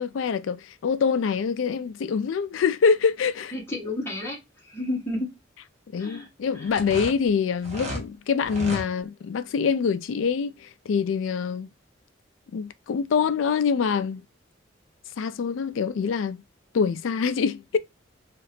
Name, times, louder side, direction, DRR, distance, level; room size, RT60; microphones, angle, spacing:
voice 1, 0.0-3.5 5.9-11.7 12.5-14.2 15.2-16.4 16.7-17.8, left 6 dB, 80° left, 0.3 m, -25 dB
voice 2, 3.5-5.3 6.0-6.3 6.5-6.7, left 1 dB, 10° left, 1.1 m, -31 dB
sound 1, 6.7-8.0 8.4-8.9, equal, 35° right, 1.0 m, -33 dB
2.8 x 2.4 x 3.3 m
head